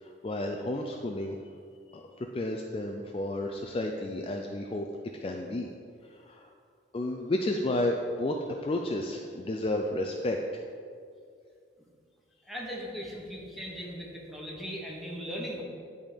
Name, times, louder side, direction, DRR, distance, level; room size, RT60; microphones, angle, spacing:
voice 1, 0.0-1.4 1.9-4.9 5.2-5.7 6.3-6.5 6.9-8.4 8.6-10.6, left 1 dB, 30° left, 2 dB, 0.4 m, -32 dB
voice 2, 12.4-15.6, equal, ahead, -4 dB, 1.2 m, -38 dB
10.5 x 3.6 x 5.1 m, 2.2 s
head